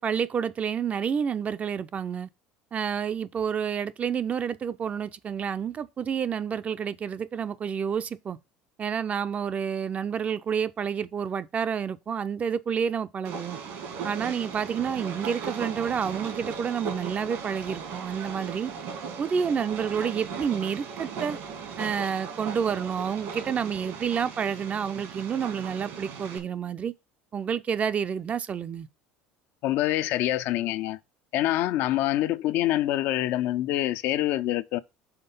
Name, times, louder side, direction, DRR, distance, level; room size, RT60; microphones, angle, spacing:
voice 1, 0.0-2.3 2.7-8.4 8.8-13.6 14.0-18.7 19.2-21.4 21.8-26.9 27.3-28.9, right 7 dB, 35° right, 0.4 m, -29 dB
Train, 13.2-26.4, right 6 dB, 70° right, 1.8 m, -37 dB
voice 2, 29.6-31.0 31.3-34.8, left 14 dB, 65° left, 0.4 m, -26 dB
5.8 x 3.6 x 5.4 m
supercardioid pair, 90°, 4 cm